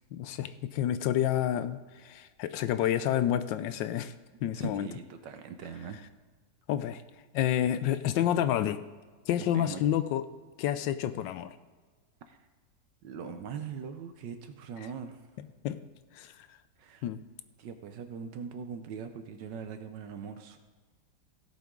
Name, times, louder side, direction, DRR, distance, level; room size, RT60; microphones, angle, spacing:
voice 1, 0.1-4.1 4.4-4.9 6.7-7.0 7.3-8.8 9.3-10.2 10.6-11.6 15.6-15.8 16.1-16.5 17.0-17.2, left 11 dB, 80° left, 12 dB, 1.2 m, -29 dB
voice 2, 4.5-6.0 9.4-9.9 12.3-12.4 13.0-15.2 16.8-17.1 17.6-20.6, right 7 dB, 75° right, 8 dB, 1.3 m, -41 dB
17.0 x 7.8 x 3.7 m, 1.4 s
omnidirectional pair, 2.0 m